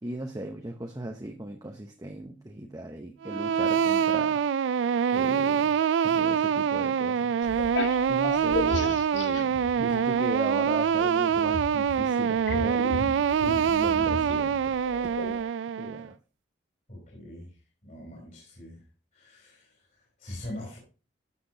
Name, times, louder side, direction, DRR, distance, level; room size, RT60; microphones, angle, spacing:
voice 1, 0.0-4.4 5.1-7.3 8.1-13.3 13.6-14.8 15.8-16.2, right 1 dB, 20° right, 4 dB, 0.7 m, -38 dB
sound 1, 3.2-16.1, right 7 dB, 90° right, 0.3 m, -25 dB
sound 2, 7.4-10.3 10.6-15.4, left 3 dB, 75° left, 0.8 m, -35 dB
voice 2, 16.9-18.8 19.1-20.8, left 1 dB, 45° left, -1 dB, 3.1 m, -43 dB
12.5 x 6.0 x 2.7 m, 0.33 s
head